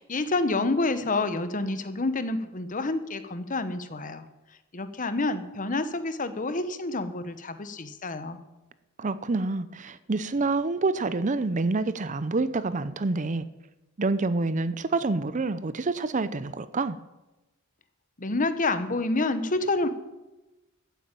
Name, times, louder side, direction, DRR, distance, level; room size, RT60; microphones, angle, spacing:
voice 1, 0.0-4.2 4.7-8.4 18.2-19.9, left 2 dB, 35° left, 11 dB, 1.1 m, -28 dB
voice 2, 9.0-13.5 14.0-17.0, right 3 dB, 35° right, 15 dB, 0.6 m, -27 dB
14.0 x 8.4 x 9.0 m, 1.0 s
head